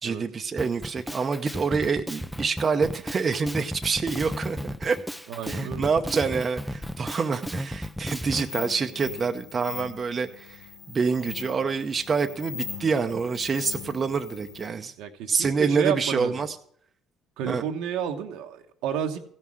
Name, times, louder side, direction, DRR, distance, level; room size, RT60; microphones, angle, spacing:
voice 1, 0.0-5.0 5.5-14.9 15.3-16.6 17.4-17.6, right 5 dB, 35° right, 6 dB, 0.7 m, -27 dB
Drum kit, 0.6-8.5, equal, ahead, 0.5 m, -34 dB
voice 2, 5.3-5.9 15.0-16.4 17.4-19.2, right 9 dB, 80° right, 5 dB, 1.1 m, -31 dB
sound 1, 8.5-14.7, left 8 dB, 80° left, 1.1 m, -40 dB
15.0 x 5.7 x 6.1 m, 0.65 s
supercardioid pair, 85°, 0 cm